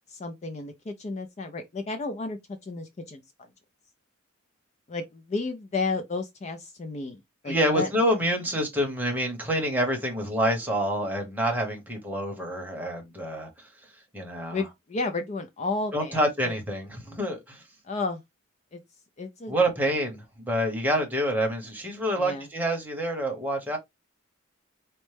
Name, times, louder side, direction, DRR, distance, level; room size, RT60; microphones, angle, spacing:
voice 1, 0.1-3.2 4.9-7.9 14.5-16.3 17.8-18.2 18.7-18.8 19.2-19.5 22.2-22.5, left 3 dB, 35° left, 0.4 m, -32 dB
voice 2, 7.4-13.7 14.1-14.6 15.9-17.6 19.5-23.8, equal, 10° right, 0.9 m, -27 dB
4.3 x 2.1 x 3.2 m
head